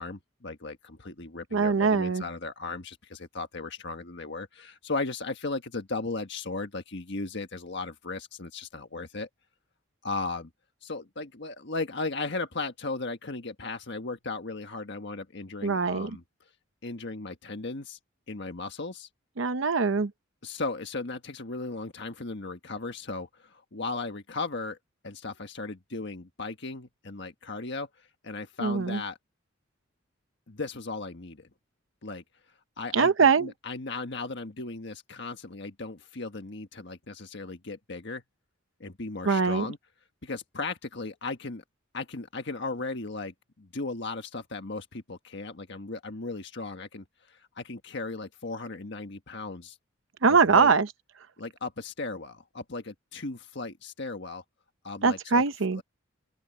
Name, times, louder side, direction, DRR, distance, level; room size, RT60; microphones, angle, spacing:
voice 1, 0.0-9.3 10.0-10.5 10.8-16.2 16.8-18.0 18.3-19.1 20.4-24.8 25.0-29.2 30.5-31.5 32.0-32.2 32.8-38.2 38.8-39.8 40.2-41.6 41.9-49.8 50.3-50.8 51.4-54.4 54.8-55.4 55.7-55.8, left 3 dB, 60° left, 1.5 m, -36 dB
voice 2, 1.5-2.2 15.6-16.1 19.4-20.1 28.6-29.0 32.9-33.5 39.2-39.7 50.2-50.9 55.0-55.8, right 5 dB, 70° right, 0.8 m, -22 dB
open air
head